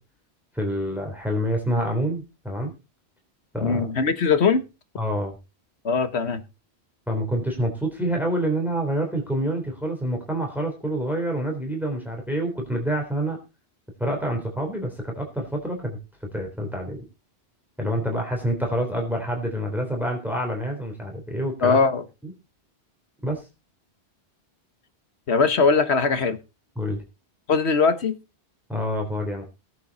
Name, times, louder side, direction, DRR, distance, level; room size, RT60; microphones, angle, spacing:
voice 1, 0.5-2.7 3.5-3.9 5.0-5.4 7.1-13.4 14.0-16.0 16.3-17.0 17.8-21.8 22.2-22.3 23.2-23.5 26.8-27.0 28.7-29.4, right 1 dB, ahead, 3.6 m, -27 dB
voice 2, 3.6-4.6 5.8-6.4 21.6-22.0 25.3-26.4 27.5-28.1, left 5 dB, 75° left, 1.6 m, -20 dB
18.0 x 7.9 x 4.1 m
omnidirectional pair, 1.1 m